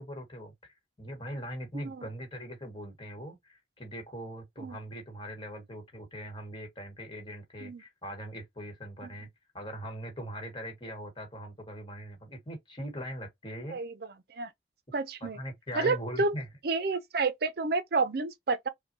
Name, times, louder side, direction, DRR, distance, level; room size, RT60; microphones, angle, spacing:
voice 1, 0.0-9.3 9.5-13.8 15.2-16.4, equal, 25° left, 1.3 m, -41 dB
voice 2, 1.7-2.0 4.6-4.8 7.6-7.8 9.0-9.1 13.7-14.5 14.9-15.4 15.7-16.4 16.6-18.7, right 3 dB, 55° right, 0.5 m, -30 dB
5.6 x 2.2 x 2.7 m
head